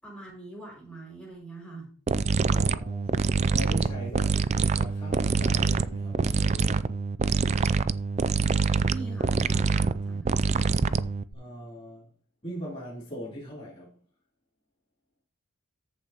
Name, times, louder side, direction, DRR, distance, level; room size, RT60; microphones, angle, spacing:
voice 1, 0.0-1.9 8.8-10.4, right 2 dB, 5° left, 5.7 m, -43 dB
sound 1, 2.1-11.3, right 4 dB, 30° right, 0.3 m, -25 dB
voice 2, 2.5-3.3 3.5-4.4 4.7-6.9 11.3-12.1 12.4-13.9, equal, 25° left, 3.5 m, -40 dB
14.0 x 6.6 x 2.9 m
head